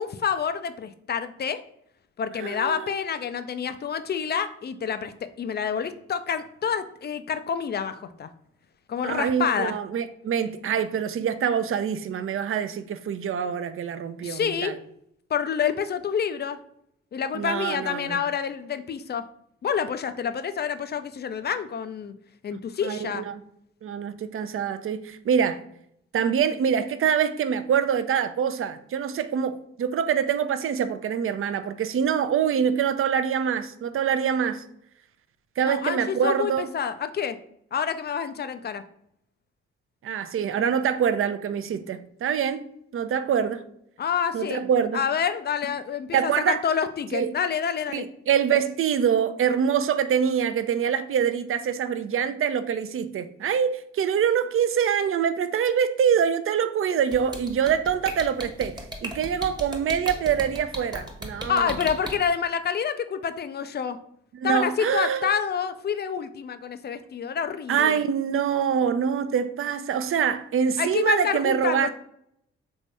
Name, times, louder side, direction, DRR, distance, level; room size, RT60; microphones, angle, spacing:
voice 1, 0.0-1.6 2.2-8.3 8.9-9.7 14.2-14.7 15.3-16.6 17.1-19.2 19.6-22.1 22.4-23.2 35.6-37.4 37.7-38.8 44.0-44.7 44.9-48.0 61.5-64.0 64.4-68.0 70.8-71.9, left 7 dB, 30° left, 0.4 m, -28 dB
voice 2, 2.4-2.9 9.0-14.8 17.3-18.2 22.8-23.4 23.8-25.6 26.1-34.6 35.6-36.7 40.0-42.6 42.9-43.6 44.3-45.0 46.1-46.6 47.1-47.3 47.9-61.8 64.3-65.3 67.7-71.9, right 8 dB, 40° right, 0.4 m, -25 dB
sound 1, 57.1-62.1, equal, 15° right, 0.9 m, -34 dB
3.4 x 2.6 x 3.2 m
hypercardioid pair, 40°, 34 cm